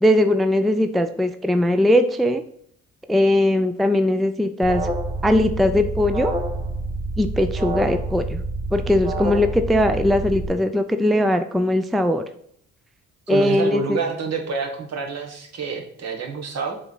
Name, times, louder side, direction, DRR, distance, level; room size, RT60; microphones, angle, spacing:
voice 1, 0.0-2.4 3.1-4.9 5.2-6.3 7.2-8.4 8.7-12.2 13.3-14.0, left 1 dB, ahead, 9 dB, 0.4 m, -20 dB
Alarm, 4.6-10.4, right 2 dB, 15° right, 1.2 m, -27 dB
voice 2, 13.3-16.8, right 5 dB, 60° right, 2 dB, 1.7 m, -28 dB
7.0 x 3.5 x 5.5 m, 0.68 s
cardioid pair, 90°, 30 cm